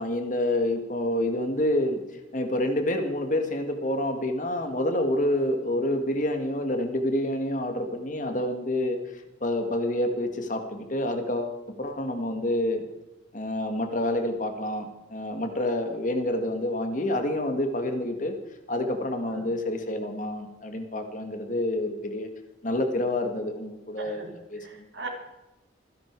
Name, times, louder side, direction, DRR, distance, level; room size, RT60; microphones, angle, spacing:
voice 1, 0.0-2.0 2.3-12.8 13.3-14.9 15.1-18.3 18.7-22.3 22.6-24.9, left 1 dB, 45° left, 6 dB, 2.0 m, -28 dB
voice 2, 24.0-24.3 24.6-25.1, right 3 dB, 75° right, 2 dB, 3.7 m, -39 dB
25.5 x 11.0 x 4.8 m, 0.99 s
head